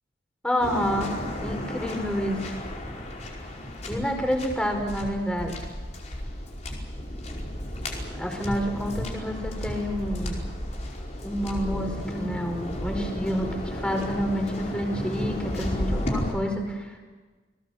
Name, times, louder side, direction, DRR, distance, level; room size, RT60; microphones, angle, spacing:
voice 1, 0.4-1.1 1.4-2.5 3.9-5.6 8.2-10.4 11.2-17.0, equal, 5° left, 3 dB, 4.9 m, -29 dB
Waves surf, 0.6-16.3, left 1 dB, 40° left, 5.0 m, -33 dB
29.5 x 20.5 x 7.3 m, 1.3 s
head